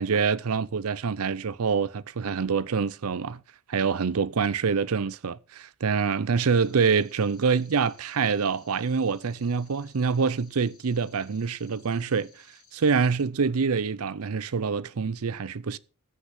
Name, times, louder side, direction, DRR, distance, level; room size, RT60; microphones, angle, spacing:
voice 1, 0.0-3.4 3.7-12.5 12.7-15.8, right 5 dB, 85° right, 0.6 m, -26 dB
sound 1, 6.4-13.2, left 6 dB, 85° left, 4.0 m, -59 dB
13.5 x 6.0 x 6.0 m
head